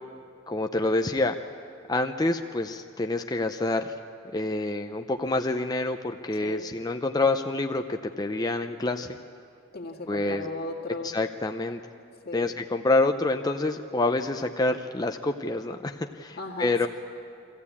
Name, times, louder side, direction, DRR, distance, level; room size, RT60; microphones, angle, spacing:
voice 1, 0.5-1.3 1.9-3.9 4.3-9.2 10.1-10.5 11.1-11.8 12.3-16.9, left 2 dB, 20° left, 5 dB, 0.5 m, -27 dB
voice 2, 9.7-11.2 11.9-12.6 16.4-16.9, left 3 dB, 50° left, 1 dB, 2.1 m, -37 dB
24.0 x 15.0 x 8.5 m, 2.5 s
head